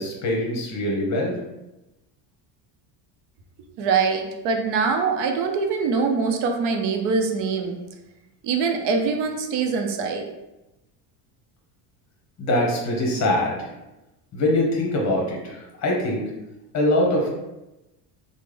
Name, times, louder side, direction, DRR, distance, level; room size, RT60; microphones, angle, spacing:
voice 1, 0.0-1.4 12.4-13.7 14.3-16.2 16.7-17.3, left 1 dB, 40° left, -2 dB, 0.9 m, -23 dB
voice 2, 3.8-7.8 8.4-10.2, right 5 dB, 70° right, 3 dB, 0.6 m, -23 dB
3.3 x 2.1 x 3.2 m, 0.97 s
cardioid pair, 130°, 45 cm